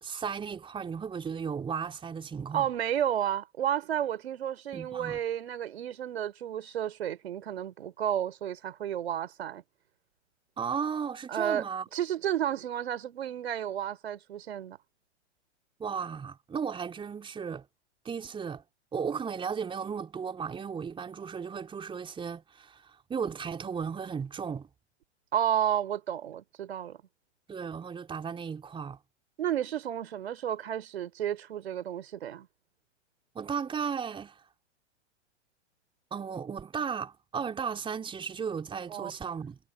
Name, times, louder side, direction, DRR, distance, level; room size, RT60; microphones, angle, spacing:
voice 1, 0.0-2.7 4.7-5.2 10.6-11.9 15.8-17.7 18.0-18.6 18.9-24.7 27.5-29.0 33.3-34.4 36.1-39.6, right 6 dB, 15° right, 4.1 m, -35 dB
voice 2, 2.5-9.6 11.3-11.6 11.9-14.8 25.3-27.0 29.4-32.5 38.9-39.1, right 10 dB, 60° right, 4.0 m, -32 dB
figure-of-eight pair, 105°, 36 cm